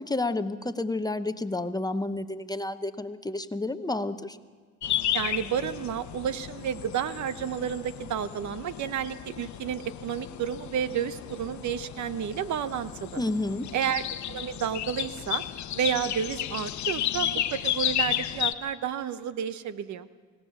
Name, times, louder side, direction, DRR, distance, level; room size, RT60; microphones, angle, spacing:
voice 1, 0.0-4.4 13.2-13.7, left 2 dB, 15° left, 10 dB, 0.9 m, -30 dB
sound 1, 4.8-18.5, left 11 dB, 70° left, 0.9 m, -33 dB
voice 2, 5.1-13.2 13.7-14.0 14.3-15.4 15.7-20.1, right 8 dB, 70° right, 13 dB, 0.9 m, -31 dB
25.5 x 17.5 x 7.3 m, 1.5 s
cardioid pair, 90°, 30 cm